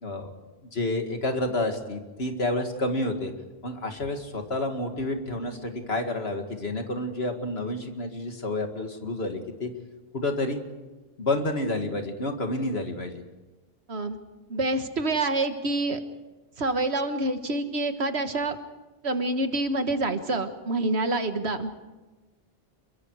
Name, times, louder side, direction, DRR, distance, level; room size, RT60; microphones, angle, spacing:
voice 1, 0.7-3.3 3.6-9.7 10.1-10.6 11.2-13.2, left 2 dB, 75° left, 4 dB, 2.5 m, -29 dB
voice 2, 14.5-16.0 16.6-18.6 19.0-21.7, right 2 dB, 80° right, 8 dB, 1.8 m, -27 dB
28.5 x 23.0 x 4.9 m, 1.2 s
omnidirectional pair, 1.1 m